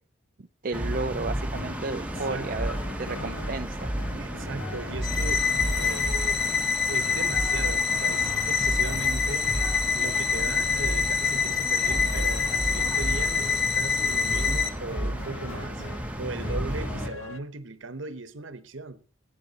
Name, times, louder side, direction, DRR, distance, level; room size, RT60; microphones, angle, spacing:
voice 1, 0.6-4.5, right 3 dB, 45° right, 0.5 m, -33 dB
sound 1, 0.7-17.1, equal, 5° right, 1.4 m, -32 dB
sound 2, 1.5-17.4, left 3 dB, 75° left, 1.0 m, -42 dB
voice 2, 2.1-2.7 4.2-5.5 5.8-6.4 6.9-9.6 9.9-19.0, right 3 dB, 65° right, 1.1 m, -38 dB
sound 3, 5.0-14.7, left 6 dB, 50° left, 1.6 m, -26 dB
18.5 x 9.0 x 4.2 m
head